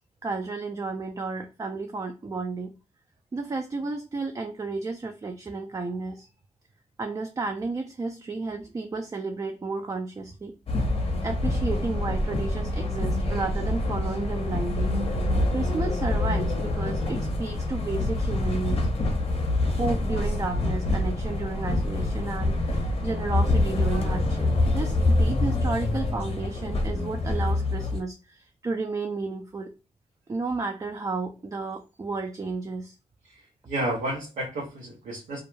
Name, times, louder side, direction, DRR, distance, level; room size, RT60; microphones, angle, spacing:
voice 1, 0.2-2.7 3.3-6.3 7.0-10.5 11.2-15.0 15.2-18.9 19.7-29.7 30.3-33.0, right 3 dB, 30° right, 0.3 m, -32 dB
sound 1, 10.7-28.0, left 2 dB, 50° left, 0.6 m, -26 dB
voice 2, 33.2-35.4, right 1 dB, 90° right, 0.7 m, -32 dB
2.3 x 2.0 x 3.0 m
cardioid pair, 65°, 13 cm